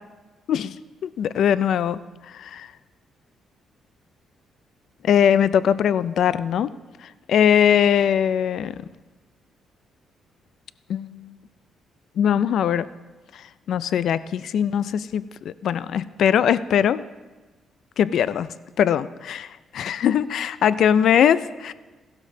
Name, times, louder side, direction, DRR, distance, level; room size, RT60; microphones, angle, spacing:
voice 1, 1.0-2.7 5.0-6.7 7.0-8.8 10.9-11.3 12.2-12.9 13.3-17.1 18.0-18.5 18.8-21.7, left 9 dB, 70° left, 16 dB, 0.3 m, -21 dB
16.0 x 12.0 x 2.7 m, 1.2 s
cardioid pair, 90°, 0 cm